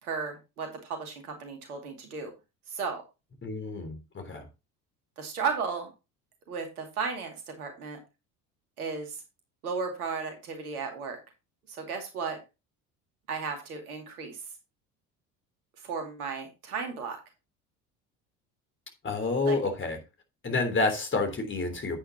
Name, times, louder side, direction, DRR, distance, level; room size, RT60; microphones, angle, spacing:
voice 1, 0.0-2.3 2.7-3.0 5.2-5.9 6.5-8.0 8.8-9.2 9.6-11.2 11.7-12.4 13.3-14.4 15.8-17.2 19.5-19.6, right 5 dB, 70° right, 2.5 m, -34 dB
voice 2, 3.4-4.4 19.0-20.0 20.4-22.0, left 3 dB, 25° left, 3.3 m, -29 dB
10.0 x 8.7 x 2.9 m
figure-of-eight pair, 60°, 46 cm